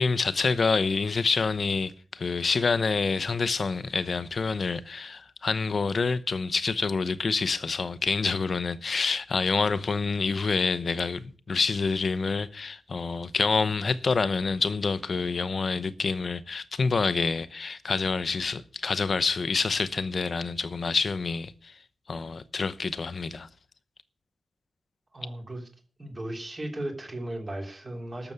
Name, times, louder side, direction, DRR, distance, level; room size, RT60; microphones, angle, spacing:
voice 1, 0.0-21.7 22.1-23.5, left 4 dB, 45° left, 0.8 m, -27 dB
voice 2, 25.1-25.7 26.0-28.3, right 1 dB, 25° right, 3.1 m, -36 dB
12.5 x 7.0 x 9.4 m
wide cardioid pair, 145°, 0 cm